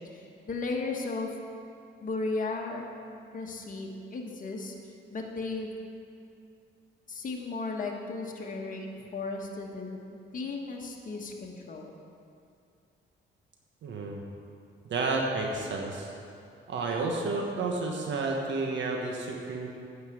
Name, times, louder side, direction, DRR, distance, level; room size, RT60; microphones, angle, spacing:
voice 1, 0.1-1.3 2.0-2.8 3.3-5.7 7.1-11.9, left 3 dB, 40° left, 0 dB, 1.5 m, -35 dB
voice 2, 13.8-14.2 14.9-16.1 16.7-19.7, right 3 dB, 70° right, 0 dB, 1.3 m, -31 dB
9.3 x 5.8 x 8.1 m, 2.5 s
cardioid pair, 90°, 20 cm